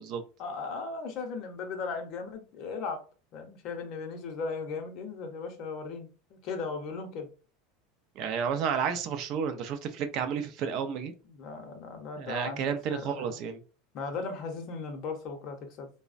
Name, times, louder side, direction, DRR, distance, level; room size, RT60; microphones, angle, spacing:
voice 1, 0.4-3.0 3.3-7.3 11.3-13.4 13.9-15.9, left 4 dB, 40° left, 0.7 m, -37 dB
voice 2, 8.2-11.1 12.2-13.6, right 7 dB, 40° right, 0.4 m, -31 dB
3.2 x 2.0 x 2.5 m
supercardioid pair, 160°, 0 cm